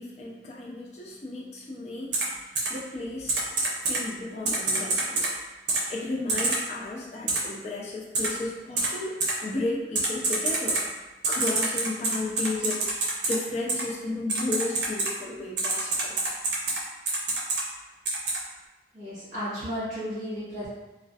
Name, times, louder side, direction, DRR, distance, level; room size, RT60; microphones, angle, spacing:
voice 1, 0.0-3.4 3.8-5.3 5.9-10.8 11.3-16.1, left 2 dB, 35° left, -3 dB, 0.4 m, -34 dB
Typing, 2.1-2.2 2.5-2.7 3.3-4.0 4.4-5.3 5.7-5.8 6.3-6.6 7.3-7.4 8.1-8.3 8.8-8.9 9.2-9.3 9.9-10.8 11.2-13.3 13.7-13.8 14.3-15.1 15.6-16.8 17.1-17.6 18.0-18.4, right 3 dB, 75° right, 0.5 m, -26 dB
voice 2, 18.9-20.7, equal, 45° right, -12 dB, 0.9 m, -33 dB
2.3 x 2.0 x 2.6 m, 1.1 s
head